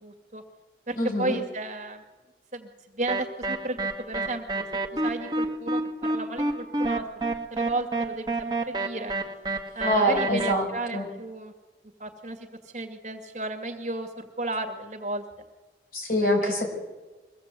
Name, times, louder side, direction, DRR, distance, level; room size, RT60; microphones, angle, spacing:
voice 1, 0.0-0.4 0.9-2.0 2.5-2.7 2.9-4.7 5.0-7.2 7.5-9.1 9.7-11.5 12.0-12.4 12.7-15.2 16.4-16.6, right 2 dB, 40° right, 4 dB, 2.2 m, -33 dB
voice 2, 1.0-1.4 9.8-10.7 10.9-11.1 15.9-16.7, equal, 50° left, 1 dB, 5.8 m, -24 dB
sound 1, 3.1-10.5, right 2 dB, 25° right, 1.4 m, -28 dB
23.5 x 16.0 x 8.3 m, 1.2 s
head